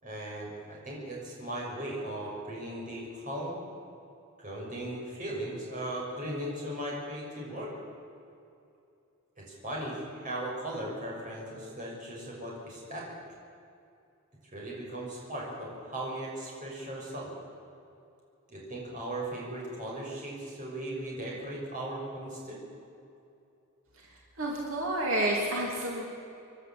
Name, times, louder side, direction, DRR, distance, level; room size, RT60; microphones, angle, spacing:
voice 1, 0.0-3.6 4.4-7.7 9.4-13.1 14.5-17.3 18.5-22.6, right 1 dB, 40° right, -4 dB, 6.3 m, -37 dB
voice 2, 24.4-26.0, right 1 dB, 75° right, -2 dB, 3.0 m, -29 dB
27.5 x 11.0 x 8.8 m, 2.7 s
head